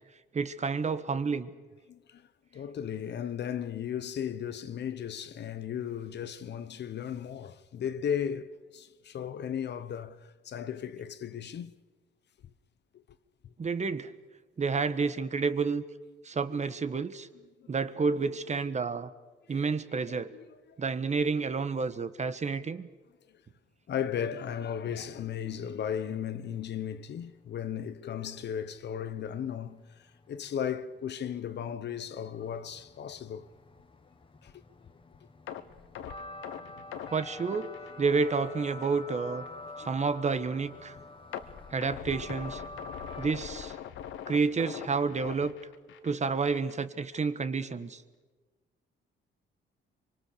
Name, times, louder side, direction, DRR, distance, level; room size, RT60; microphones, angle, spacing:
voice 1, 0.3-1.5 13.6-14.1 14.6-15.8 16.2-17.3 17.7-19.1 19.5-20.3 20.8-22.9 37.1-39.4 39.8-41.0 41.7-42.6 43.2-43.8 44.3-45.5 46.0-48.0, right 4 dB, 35° right, 1.4 m, -30 dB
voice 2, 1.9-2.2 2.5-11.7 12.9-13.0 17.6-17.7 20.1-20.8 23.9-33.5 34.4-34.6 39.5-39.9, left 8 dB, 60° left, 1.1 m, -36 dB
sound 1, 24.8-25.7 28.8-28.9 29.0-43.3, left 2 dB, 25° left, 1.8 m, -48 dB
sound 2, 35.5-38.5 38.8-39.0 39.5-39.6 41.3-46.2 46.5-46.7 47.2-47.3, left 9 dB, 85° left, 1.4 m, -42 dB
24.5 x 24.5 x 6.8 m
cardioid pair, 90°, 20 cm